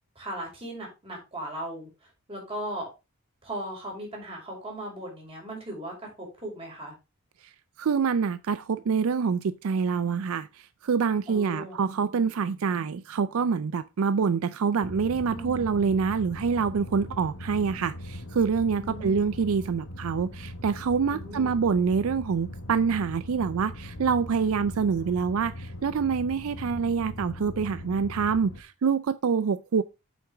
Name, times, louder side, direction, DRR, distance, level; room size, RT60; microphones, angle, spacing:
voice 1, 0.1-1.9 2.3-2.9 3.4-6.9 11.3-11.8 15.3-15.7 18.8-19.2 21.1-21.5, right 1 dB, 25° right, 4.7 m, -37 dB
voice 2, 7.8-29.8, right 5 dB, 70° right, 0.4 m, -26 dB
sound 1, 14.8-28.6, left 1 dB, 70° left, 1.3 m, -40 dB
8.5 x 5.9 x 3.4 m
head